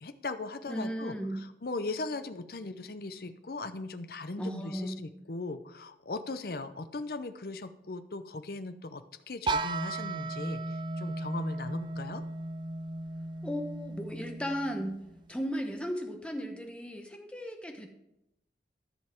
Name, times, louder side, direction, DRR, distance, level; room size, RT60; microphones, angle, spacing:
voice 1, 0.0-12.2, left 3 dB, 55° left, 10 dB, 0.6 m, -38 dB
voice 2, 0.7-1.4 4.4-5.0 13.4-15.0 15.3-17.9, equal, 5° left, 3 dB, 0.9 m, -35 dB
sound 1, 9.5-15.3, right 2 dB, 25° right, 0.4 m, -36 dB
14.0 x 5.5 x 4.5 m, 0.86 s
head